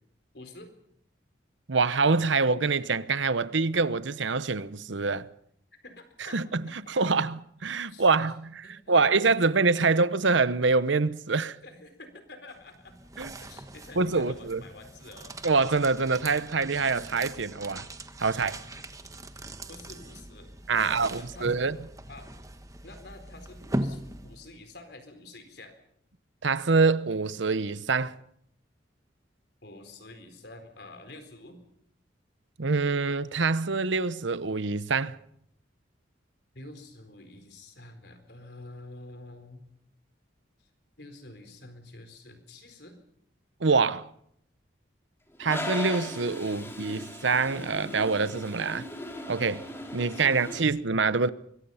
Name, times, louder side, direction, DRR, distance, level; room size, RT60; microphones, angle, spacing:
voice 1, 0.3-0.7 5.8-6.4 7.0-7.1 7.9-8.1 8.6-9.1 9.4-9.5 9.8-9.9 11.6-13.0 13.4-15.3 19.7-21.7 22.1-22.3 22.8-25.7 29.6-31.6 36.5-39.6 40.6-40.7 41.0-43.0 46.5-46.7 50.1-50.6, left 2 dB, 60° left, 4.2 m, -48 dB
voice 2, 1.7-5.3 6.3-6.6 6.9-11.6 13.2-13.3 14.0-14.6 15.4-17.9 18.2-18.6 20.7-21.8 26.4-28.1 32.6-35.2 43.6-44.1 45.4-48.8 49.3-49.6 49.9-51.3, right 4 dB, 75° right, 0.9 m, -25 dB
sound 1, 12.5-24.7, right 1 dB, 15° right, 1.3 m, -40 dB
Toilet flush, 45.4-50.6, left 1 dB, 15° left, 3.2 m, -38 dB
25.0 x 23.0 x 5.7 m
head